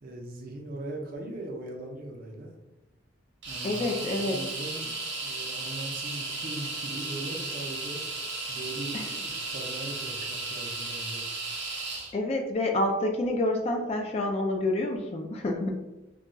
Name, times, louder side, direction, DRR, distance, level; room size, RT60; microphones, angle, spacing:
voice 1, 0.0-2.5 3.5-4.9 5.2-8.0 8.5-11.3, right 1 dB, 45° right, 1 dB, 0.5 m, -40 dB
sound 1, 3.4-12.1, right 3 dB, 65° right, 0.9 m, -35 dB
voice 2, 3.6-4.4 8.9-9.1 12.1-15.8, left 1 dB, 30° left, 2 dB, 0.3 m, -28 dB
2.3 x 2.2 x 3.9 m, 1.0 s
head